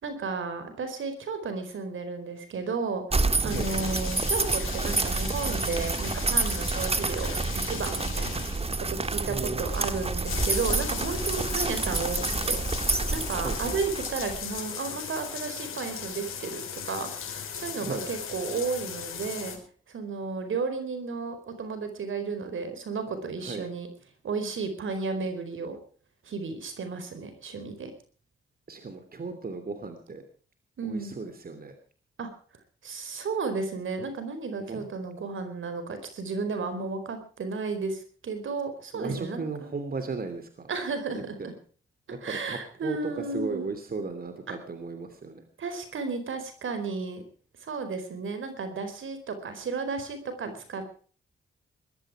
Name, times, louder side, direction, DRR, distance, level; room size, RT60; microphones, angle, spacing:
voice 1, 0.0-7.4 7.6-8.4 8.8-12.6 13.1-19.6 19.9-23.9 24.2-25.8 26.2-27.9 30.8-31.1 32.2-32.3 32.8-39.7 40.7-41.5 42.1-43.7 44.5-44.6 45.6-47.2 47.6-50.9, right 4 dB, 70° right, 9 dB, 4.6 m, -33 dB
sound 1, 3.1-14.6, right 3 dB, 30° right, 1.6 m, -29 dB
voice 2, 3.4-3.9 9.2-9.6 13.4-13.8 17.8-18.1 23.4-23.7 28.7-30.2 30.8-31.7 34.7-34.8 38.9-40.7 41.1-41.5 42.1-43.0 43.3-45.4, right 4 dB, 45° right, 8 dB, 3.1 m, -36 dB
sound 2, 3.5-19.6, left 7 dB, 80° left, 4.6 m, -38 dB
21.0 x 13.0 x 5.0 m, 0.42 s
cardioid pair, 60°, 21 cm